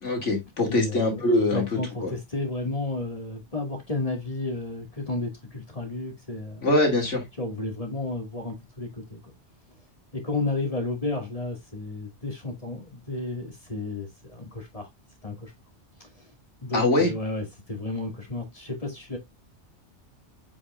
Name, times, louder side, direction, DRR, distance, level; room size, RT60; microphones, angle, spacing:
voice 1, 0.0-1.6 2.0-2.1 6.6-7.2 16.7-17.1, left 2 dB, 85° left, 2.8 m, -23 dB
voice 2, 0.7-6.7 7.4-9.2 10.1-14.9 15.2-15.5 16.0-16.1 16.6-19.2, left 2 dB, 30° left, 2.3 m, -32 dB
7.8 x 5.2 x 2.5 m
omnidirectional pair, 1.2 m